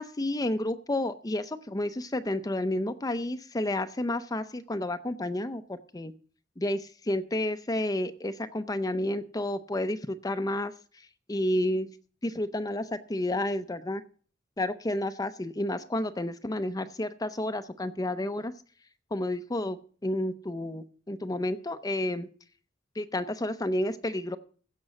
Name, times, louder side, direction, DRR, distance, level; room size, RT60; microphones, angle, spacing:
voice 1, 0.0-6.1 6.6-10.7 11.3-11.9 12.2-14.0 14.6-18.5 19.1-19.8 20.0-22.3 23.0-24.4, left 1 dB, 20° left, 9 dB, 0.6 m, -30 dB
16.0 x 6.1 x 7.4 m, 0.42 s
head